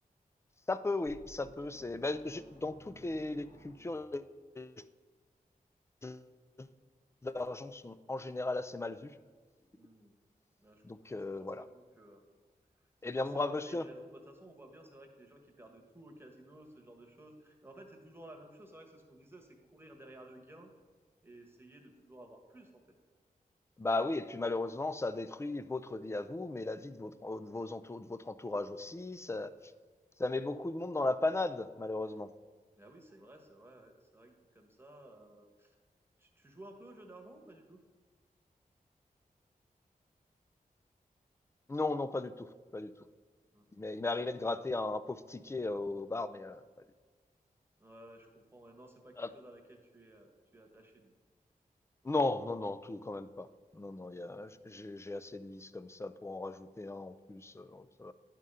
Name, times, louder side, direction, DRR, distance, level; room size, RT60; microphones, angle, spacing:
voice 1, 0.7-2.7 3.0-4.2 4.6-4.7 6.0-6.2 6.6-6.7 7.2-9.1 10.8-11.6 13.0-13.8 23.8-29.5 30.2-32.3 41.7-42.5 42.7-42.9 43.8-46.6 49.2-49.3 52.0-53.5 53.7-58.1, left 2 dB, 20° left, 13 dB, 0.4 m, -36 dB
sound 1, 1.1-4.3, right 1 dB, 50° left, 1.8 m, -58 dB
voice 2, 9.7-10.2 10.6-12.2 13.0-20.7 21.2-22.8 32.8-35.7 36.2-37.8 43.5-43.7 47.8-51.1, right 1 dB, 15° right, 1 dB, 1.3 m, -55 dB
11.0 x 3.7 x 5.5 m, 1.5 s
wide cardioid pair, 90°, 15 cm